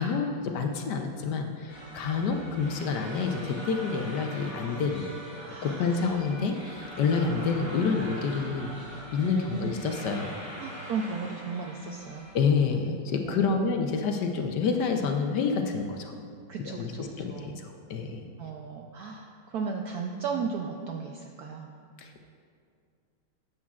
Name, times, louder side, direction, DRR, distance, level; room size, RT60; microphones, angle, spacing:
voice 1, 0.0-5.0 5.6-8.7 9.1-10.5 12.3-16.1 16.6-16.9 17.2-18.2 22.0-22.2, left 5 dB, 70° left, 4 dB, 1.1 m, -28 dB
sound 1, 1.7-12.4, right 1 dB, 15° right, 1.2 m, -43 dB
voice 2, 5.5-6.2 7.2-7.3 9.3-9.8 10.6-12.3 13.2-13.7 16.5-17.6 18.4-21.7, right 5 dB, 75° right, 2 dB, 0.8 m, -35 dB
13.0 x 8.4 x 2.4 m, 2.3 s
omnidirectional pair, 2.1 m